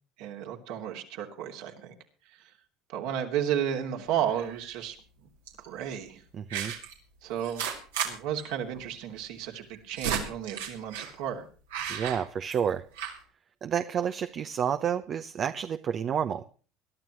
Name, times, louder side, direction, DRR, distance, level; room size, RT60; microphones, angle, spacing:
voice 1, 0.2-1.9 2.9-5.0 5.7-6.2 7.2-7.7 8.0-11.5, right 9 dB, 75° right, 2.9 m, -33 dB
sound 1, 4.3-4.7 5.5-5.7 6.5-6.9 7.4-8.1 8.4-8.5 8.7-8.8 9.6-11.1 11.7-12.7 13.0-13.2, right 8 dB, 90° right, 3.4 m, -34 dB
voice 2, 6.3-6.7 11.9-12.9 13.6-16.5, right 8 dB, 45° right, 0.8 m, -30 dB
22.0 x 12.5 x 3.1 m
hypercardioid pair, 80°, 0 cm